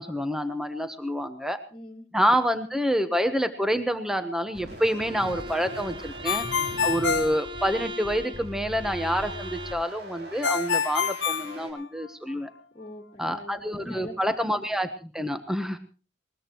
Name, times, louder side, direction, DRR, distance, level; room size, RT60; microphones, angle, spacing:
voice 1, 0.0-1.6 2.1-6.5 6.8-12.5 13.2-15.8, equal, 5° right, 8 dB, 1.1 m, -27 dB
voice 2, 1.7-2.0 12.7-14.1 14.5-14.6, left 1 dB, 30° left, -2 dB, 2.0 m, -42 dB
sound 1, 4.5-11.7, equal, 60° right, 6.3 m, -41 dB
Bowed string instrument, 5.0-9.9, equal, 25° right, 0.8 m, -39 dB
Ringtone, 6.2-8.2 10.4-12.3, left 6 dB, 75° left, 0.9 m, -27 dB
21.0 x 20.5 x 3.0 m, 0.36 s
head